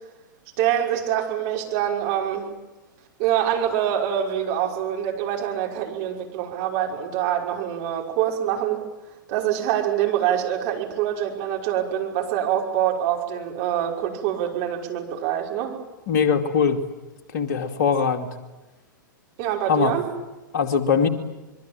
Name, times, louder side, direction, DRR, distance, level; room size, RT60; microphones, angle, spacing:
voice 1, 0.6-2.5 3.2-8.8 9.3-15.8 19.4-20.1, right 10 dB, 40° right, 1 dB, 5.8 m, -25 dB
voice 2, 16.1-16.8 17.3-18.3 19.7-19.9 20.5-21.1, left 6 dB, 55° left, 6 dB, 2.5 m, -21 dB
25.5 x 23.0 x 9.0 m, 1.1 s
figure-of-eight pair, 105°, 11 cm